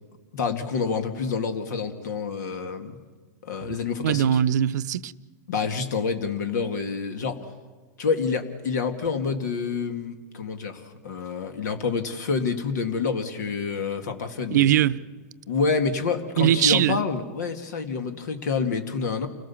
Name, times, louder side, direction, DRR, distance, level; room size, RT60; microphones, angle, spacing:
voice 1, 0.3-3.0 3.4-4.4 5.5-7.5 8.0-14.7 15.5-19.3, left 5 dB, 75° left, 2.2 m, -28 dB
voice 2, 4.0-5.1 14.5-15.0 16.4-17.0, right 11 dB, 75° right, 0.7 m, -20 dB
29.0 x 17.0 x 7.1 m
hypercardioid pair, 130°, 9 cm